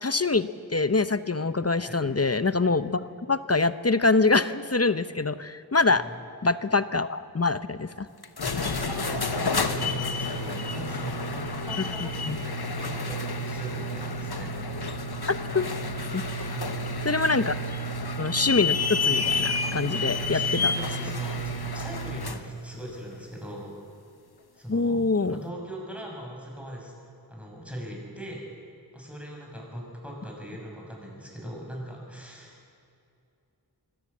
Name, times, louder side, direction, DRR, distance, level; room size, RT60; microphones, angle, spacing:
voice 1, 0.0-6.0 6.4-8.1 12.3-12.4 15.5-15.7 16.1-16.5 17.0-17.5 18.2-20.7 24.7-25.4, left 3 dB, 35° left, 13 dB, 0.8 m, -25 dB
voice 2, 5.9-6.2 8.4-14.6 16.4-17.1 17.4-17.6 19.9-23.7 24.5-26.9 27.3-28.5 28.9-32.6, equal, 5° right, -2 dB, 7.2 m, -40 dB
sound 1, 8.2-22.5, left 2 dB, 65° left, 1.2 m, -30 dB
24.0 x 17.5 x 8.5 m, 2.5 s
wide cardioid pair, 50°, 41 cm